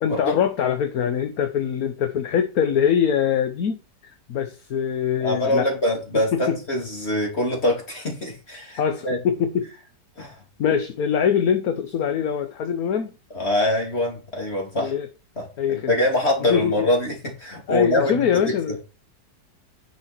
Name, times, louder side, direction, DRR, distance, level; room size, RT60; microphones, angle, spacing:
voice 1, 0.0-3.8 4.0-5.7 6.3-6.6 8.8-9.7 10.6-13.1 14.7-15.1 15.6-15.9 16.5-16.9 17.7-18.8, left 8 dB, 60° left, 1.3 m, -23 dB
voice 2, 5.2-9.2 10.2-10.4 13.3-14.9 15.4-18.3, left 1 dB, 35° left, 3.6 m, -24 dB
10.0 x 6.8 x 4.5 m
omnidirectional pair, 1.9 m